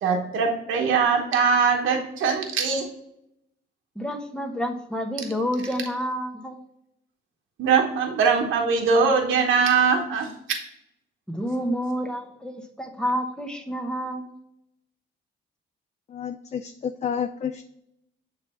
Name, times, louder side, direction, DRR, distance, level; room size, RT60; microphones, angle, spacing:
voice 1, 0.0-2.8 7.6-10.3, right 5 dB, 80° right, 2 dB, 1.0 m, -21 dB
voice 2, 4.0-6.6 11.3-14.4, equal, 5° left, 3 dB, 1.0 m, -29 dB
voice 3, 16.1-17.7, left 7 dB, 35° left, 8 dB, 0.4 m, -30 dB
7.0 x 3.3 x 4.3 m, 0.79 s
cardioid pair, 90°, 20 cm